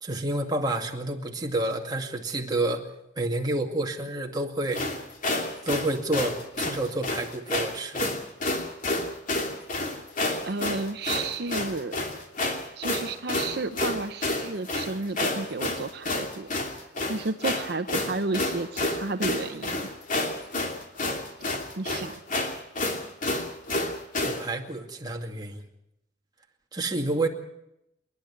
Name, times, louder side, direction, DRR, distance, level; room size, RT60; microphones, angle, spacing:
voice 1, 0.0-2.8 3.2-4.8 5.6-8.1 24.2-25.6 26.7-27.3, right 2 dB, 25° right, 1 dB, 2.3 m, -29 dB
sound 1, 4.7-24.4, left 2 dB, 50° left, 2.9 m, -29 dB
voice 2, 10.5-12.1 12.8-16.5 17.1-19.8 21.8-22.2, right 3 dB, 65° right, 9 dB, 0.8 m, -32 dB
27.5 x 11.0 x 9.5 m, 0.85 s
head